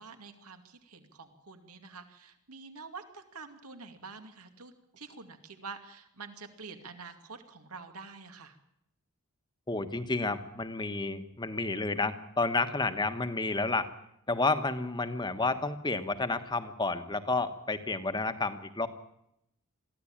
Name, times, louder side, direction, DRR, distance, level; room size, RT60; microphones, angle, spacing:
voice 1, 0.0-8.6, right 4 dB, 85° right, 7 dB, 2.4 m, -47 dB
voice 2, 9.7-13.9 14.3-18.9, left 3 dB, 20° left, 9 dB, 1.3 m, -30 dB
22.5 x 15.0 x 8.9 m, 0.79 s
head